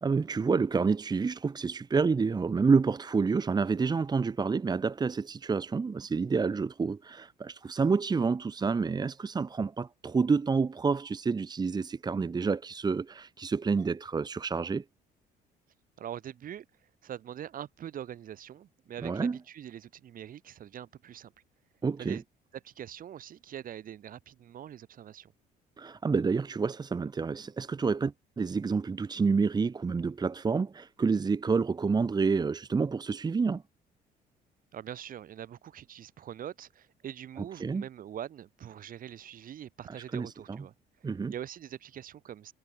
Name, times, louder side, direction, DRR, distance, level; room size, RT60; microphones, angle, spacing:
voice 1, 0.0-14.8 19.0-19.4 21.8-22.2 25.8-33.6 37.6-37.8 40.1-40.6 41.0-41.3, right 5 dB, 25° right, 1.3 m, -28 dB
voice 2, 16.0-16.7 17.0-21.3 22.0-22.2 22.6-25.3 34.7-40.7 41.3-42.5, right 10 dB, 55° right, 5.6 m, -43 dB
cardioid pair, 110°, 17 cm